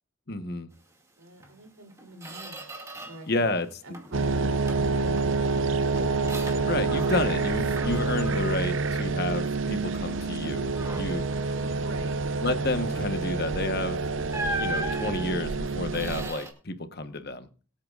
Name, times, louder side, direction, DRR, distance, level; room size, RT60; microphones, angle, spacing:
voice 1, 0.3-0.7 3.3-3.8 6.7-11.2 12.4-14.0 14.6-17.5, left 2 dB, 50° left, 9 dB, 1.1 m, -30 dB
voice 2, 1.2-2.7 3.0-3.5 3.8-6.0 11.6-12.2, right 1 dB, 90° right, 2 dB, 3.2 m, -45 dB
Squeak, 1.4-1.5 1.9-3.3 3.7-4.2 4.7-7.5 7.8-9.6 10.0-10.2 10.7-11.3 13.4-13.6 14.3-16.5, right 1 dB, 15° right, 2.3 m, -38 dB
sound 1, 4.1-16.3, right 3 dB, 60° right, 0.6 m, -28 dB
24.0 x 8.6 x 2.5 m, 0.40 s
head